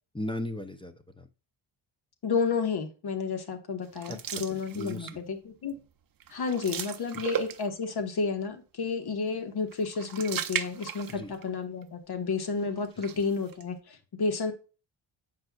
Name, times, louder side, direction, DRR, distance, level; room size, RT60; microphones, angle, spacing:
voice 1, 0.1-1.3 4.1-5.2 11.1-11.3, left 1 dB, 10° left, 8 dB, 0.5 m, -37 dB
voice 2, 2.2-5.7 6.3-14.5, left 5 dB, 50° left, 6 dB, 1.3 m, -31 dB
sound 1, 3.9-5.3 5.7-5.9 6.2-7.9 9.7-11.5 11.8-11.9 12.8-13.6, right 9 dB, 45° right, 0.6 m, -36 dB
7.7 x 5.3 x 2.3 m, 0.32 s
wide cardioid pair, 135°, 48 cm